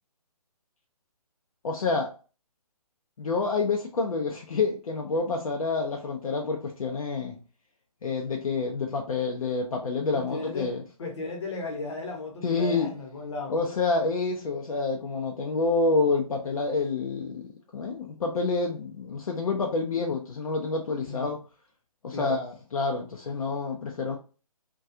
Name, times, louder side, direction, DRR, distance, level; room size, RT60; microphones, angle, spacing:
voice 1, 1.6-2.1 3.2-7.4 8.0-10.8 12.4-12.9 13.5-17.4 17.7-21.4 22.0-24.2, left 3 dB, 60° left, 0.5 m, -28 dB
voice 2, 10.3-10.7 11.0-13.6 21.0-21.3 22.1-22.4, left 2 dB, 45° left, 0.9 m, -35 dB
2.4 x 2.3 x 2.7 m
figure-of-eight pair, 150°, 20 cm